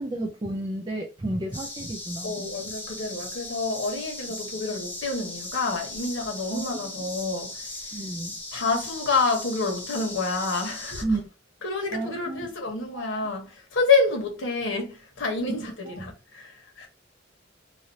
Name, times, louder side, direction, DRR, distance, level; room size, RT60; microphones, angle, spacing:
voice 1, 0.0-2.5 6.5-6.9 7.9-8.4 11.0-11.3 11.9-12.5 12.9-13.0 15.5-15.6 15.8-15.9, right 2 dB, 20° right, 0.4 m, -32 dB
sound 1, 1.5-11.0, left 2 dB, 10° left, 0.9 m, -38 dB
voice 2, 2.2-8.0 8.5-11.0 11.6-16.9, left 4 dB, 70° left, 1.2 m, -28 dB
3.2 x 2.5 x 2.7 m
head